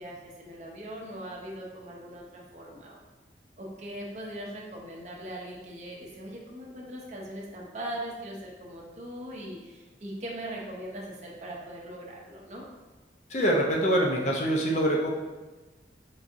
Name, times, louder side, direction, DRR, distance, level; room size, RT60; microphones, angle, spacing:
voice 1, 0.0-3.0 3.6-12.6, right 1 dB, 40° right, -2 dB, 0.6 m, -40 dB
voice 2, 13.3-15.1, right 1 dB, 40° left, -1 dB, 0.5 m, -24 dB
4.5 x 2.7 x 2.5 m, 1.2 s
head